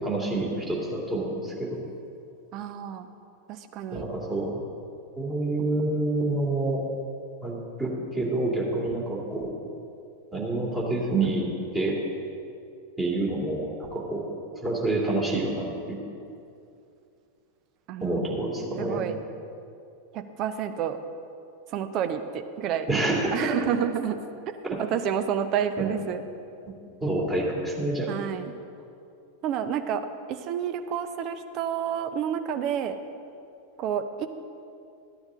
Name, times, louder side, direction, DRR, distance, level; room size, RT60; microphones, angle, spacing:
voice 1, 0.0-1.8 3.9-4.6 5.2-6.8 7.4-9.5 10.3-12.0 13.0-14.3 14.6-16.0 18.0-19.1 22.9-23.7 24.7-24.8 25.8-25.9 27.0-28.1, right 2 dB, 15° right, -3 dB, 2.7 m, -28 dB
voice 2, 2.5-3.1 3.5-4.1 17.9-18.2 18.8-19.1 20.1-21.0 21.7-22.9 23.3-24.2 24.5-26.2 28.1-28.5 29.4-33.0 33.8-34.3, right 9 dB, 35° right, 8 dB, 0.7 m, -29 dB
14.0 x 9.8 x 3.8 m, 2.6 s
figure-of-eight pair, 90°, 0 cm